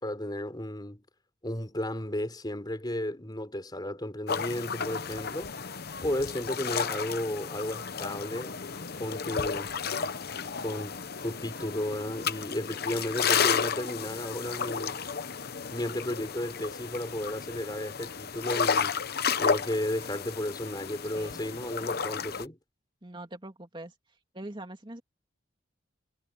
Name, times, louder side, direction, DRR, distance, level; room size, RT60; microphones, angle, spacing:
voice 1, 0.0-1.0 1.4-5.5 6.0-8.7 9.0-9.7 10.6-15.0 15.7-19.0 19.4-22.6, left 1 dB, 20° left, 4.4 m, -34 dB
sound 1, 4.3-22.4, left 6 dB, 55° left, 1.0 m, -32 dB
voice 2, 21.1-21.5 23.0-23.9 24.3-25.0, right 1 dB, 25° right, 2.8 m, -42 dB
head